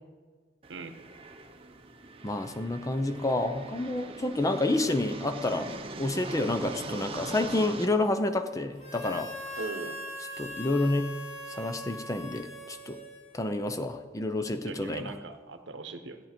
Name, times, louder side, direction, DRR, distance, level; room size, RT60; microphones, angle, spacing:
sound 1, 0.6-7.9, right 3 dB, 30° right, 0.7 m, -41 dB
voice 1, 2.2-9.3 10.4-11.1 11.5-13.0 13.3-15.1, left 2 dB, 20° left, 8 dB, 0.6 m, -29 dB
Harmonica, 8.8-13.6, equal, 35° left, 2.0 m, -41 dB
voice 2, 9.6-10.0 14.6-16.2, right 3 dB, 90° right, 8 dB, 0.9 m, -39 dB
13.5 x 9.0 x 4.3 m, 1.5 s
head